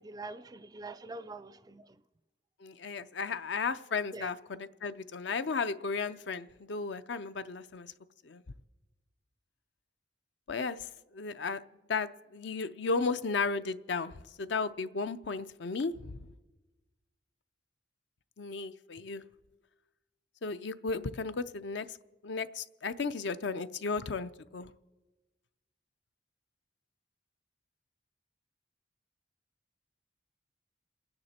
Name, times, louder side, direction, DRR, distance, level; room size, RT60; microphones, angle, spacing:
voice 1, 0.0-1.9 4.1-4.3, right 2 dB, 20° right, 0.4 m, -44 dB
voice 2, 2.6-7.9 8.2-8.4 10.5-11.6 11.9-16.3 18.4-19.2 20.4-22.0 22.2-24.7, left 4 dB, 70° left, 0.6 m, -34 dB
28.0 x 9.6 x 4.3 m
head